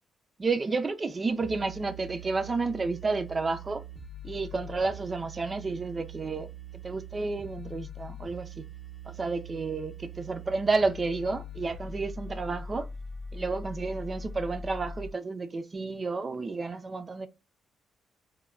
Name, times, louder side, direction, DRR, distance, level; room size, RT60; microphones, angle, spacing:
voice 1, 0.4-3.8 4.2-6.5 6.8-8.6 9.1-12.9 13.3-17.3, right 3 dB, 30° right, 0.4 m, -31 dB
sound 1, 1.4-15.1, equal, 5° left, 0.7 m, -42 dB
3.1 x 2.1 x 2.3 m
cardioid pair, 90°, 0 cm